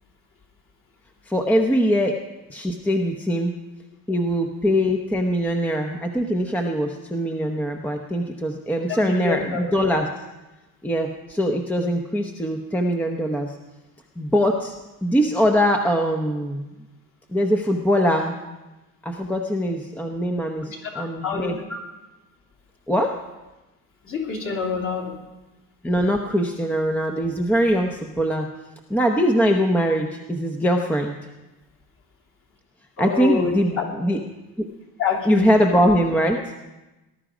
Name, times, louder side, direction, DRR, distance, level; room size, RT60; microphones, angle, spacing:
voice 1, 1.3-2.2 2.5-3.5 4.1-10.1 10.8-13.6 14.2-14.7 15.0-16.6 17.3-18.4 19.0-21.8 22.9-23.2 25.8-28.5 28.9-31.2 33.0-34.2 35.3-36.5, equal, 5° left, 3 dB, 0.8 m, -22 dB
voice 2, 8.9-9.6 20.8-21.6 24.0-25.2 33.0-33.9 35.0-35.6, left 5 dB, 35° left, 0 dB, 3.1 m, -27 dB
19.0 x 11.5 x 5.0 m, 1.1 s
cardioid pair, 150°, 35 cm